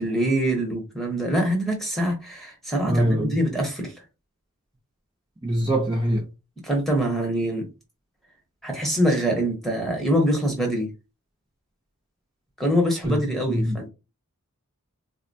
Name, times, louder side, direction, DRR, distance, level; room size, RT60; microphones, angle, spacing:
voice 1, 0.0-3.9 6.6-7.7 8.6-10.9 12.6-13.9, equal, ahead, 0.9 m, -24 dB
voice 2, 2.9-3.4 5.4-6.2 13.0-13.2 13.5-13.8, right 1 dB, 20° right, 0.6 m, -23 dB
3.9 x 2.1 x 2.6 m
head